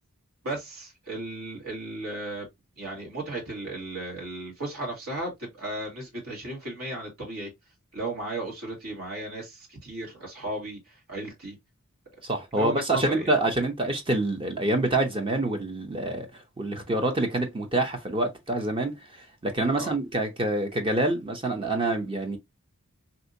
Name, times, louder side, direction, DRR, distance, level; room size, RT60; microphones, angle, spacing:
voice 1, 0.4-2.5 2.8-7.5 7.9-10.8 11.1-11.6 12.6-13.3 19.7-19.9, right 1 dB, 80° right, 1.9 m, -35 dB
voice 2, 12.2-22.4, right 2 dB, 25° right, 0.6 m, -27 dB
3.4 x 2.7 x 2.6 m
head